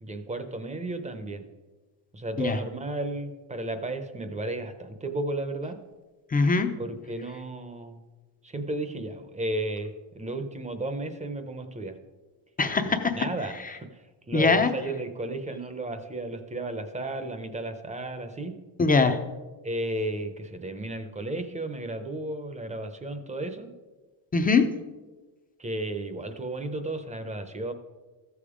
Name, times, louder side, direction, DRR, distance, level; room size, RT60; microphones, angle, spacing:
voice 1, 0.0-1.5 2.1-5.8 6.8-8.0 8.4-12.0 12.8-18.5 19.6-23.7 25.6-27.7, right 2 dB, 15° right, 8 dB, 0.7 m, -34 dB
voice 2, 6.3-6.7 12.6-13.1 14.3-14.7 18.8-19.2 24.3-24.6, left 4 dB, 20° left, 7 dB, 0.6 m, -21 dB
14.5 x 7.1 x 5.0 m, 1.2 s
cardioid pair, 180°, 46 cm